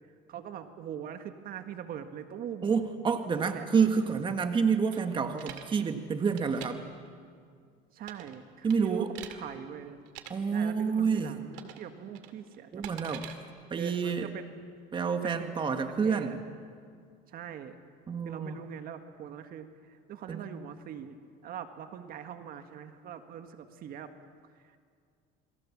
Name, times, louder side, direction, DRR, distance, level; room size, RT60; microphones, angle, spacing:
voice 1, 0.3-2.7 3.4-3.7 7.9-10.0 10.5-12.8 13.8-14.6 15.2-16.3 17.3-17.8 18.3-24.1 24.5-24.8, right 9 dB, 55° right, 8 dB, 1.7 m, -42 dB
voice 2, 2.6-6.9 8.6-9.1 10.3-11.4 12.7-13.3 13.7-14.3 14.9-16.4 18.1-18.6 20.3-20.5, right 5 dB, 25° right, 7 dB, 1.6 m, -28 dB
sound 1, 4.9-5.7 6.2-6.7 8.0-8.4 8.7-9.4 10.1-10.3 11.5-11.9 12.1-13.3, right 12 dB, 85° right, 2.2 m, -45 dB
29.0 x 22.5 x 7.4 m, 2.1 s
cardioid pair, 125°, 18 cm